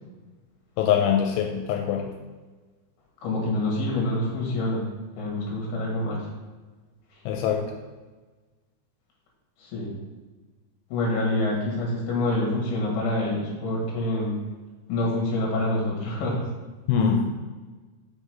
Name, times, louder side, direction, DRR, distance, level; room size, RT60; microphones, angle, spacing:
voice 1, 0.8-2.1 7.3-7.7 16.9-17.3, left 8 dB, 85° left, 2 dB, 3.0 m, -23 dB
voice 2, 3.2-4.9 5.2-6.3 9.6-9.9 10.9-14.4 14.9-16.4, left 2 dB, 65° left, -2 dB, 3.4 m, -26 dB
6.2 x 5.2 x 5.1 m, 1.3 s
omnidirectional pair, 5.3 m